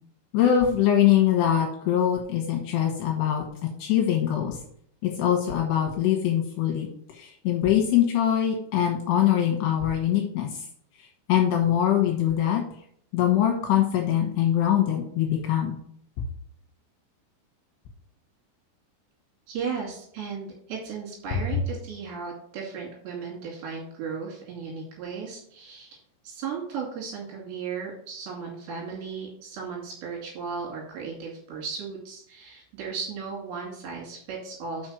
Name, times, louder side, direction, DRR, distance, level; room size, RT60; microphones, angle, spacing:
voice 1, 0.3-3.4 3.8-4.6 5.0-6.9 7.1-10.7 11.0-12.6 13.1-15.8, left 10 dB, 70° left, 0 dB, 2.9 m, -23 dB
voice 2, 19.5-26.0 26.2-34.9, right 5 dB, 60° right, -3 dB, 4.5 m, -35 dB
6.6 x 6.3 x 6.3 m, 0.65 s
omnidirectional pair, 5.9 m